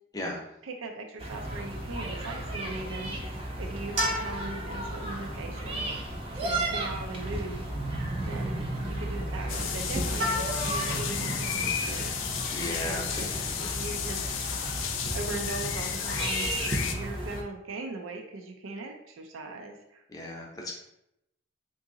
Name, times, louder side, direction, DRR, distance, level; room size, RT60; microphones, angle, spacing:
voice 1, 0.6-7.6 8.2-14.5 15.1-16.5 16.8-20.0, right 2 dB, 90° right, 3 dB, 0.5 m, -40 dB
sound 1, 1.2-17.4, right 1 dB, 30° right, 0.5 m, -34 dB
sound 2, 4.0-16.6, equal, 60° right, 0.8 m, -38 dB
sound 3, 9.5-16.9, left 8 dB, 80° left, 0.4 m, -33 dB
voice 2, 12.5-13.1 20.1-20.7, left 1 dB, 20° left, -1 dB, 0.6 m, -35 dB
2.8 x 2.6 x 3.7 m, 0.82 s
head